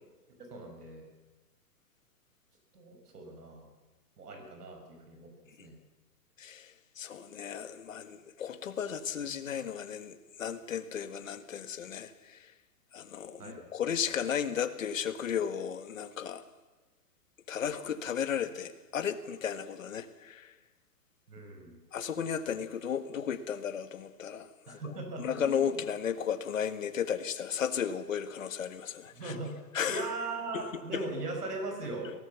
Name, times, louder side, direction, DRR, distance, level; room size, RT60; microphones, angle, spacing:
voice 1, 0.5-1.0 2.7-3.7 4.2-5.3 5.6-5.8 13.4-13.6 21.3-21.8 24.7-25.8 29.1-29.5 29.8-32.1, right 2 dB, 75° right, 3 dB, 6.3 m, -39 dB
voice 2, 6.4-6.7 7.0-12.4 12.9-16.4 17.5-20.5 21.9-24.9 25.2-29.3 29.7-30.1 30.5-30.6 30.9-31.0, left 8 dB, 55° left, 10 dB, 1.8 m, -34 dB
23.0 x 17.5 x 7.1 m, 1.2 s
hypercardioid pair, 180°, 47 cm